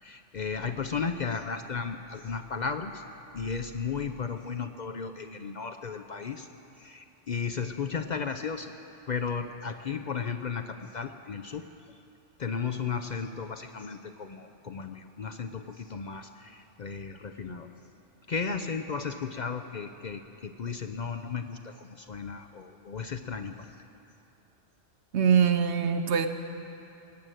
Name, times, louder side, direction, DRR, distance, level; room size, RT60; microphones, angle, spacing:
voice 1, 0.0-3.0 3.3-6.5 6.8-8.7 9.1-11.7 12.4-17.7 18.3-23.8, left 5 dB, 50° left, 7 dB, 0.6 m, -35 dB
voice 2, 25.1-26.3, right 7 dB, 75° right, 8 dB, 1.1 m, -23 dB
19.0 x 7.9 x 9.0 m, 2.8 s
omnidirectional pair, 1.2 m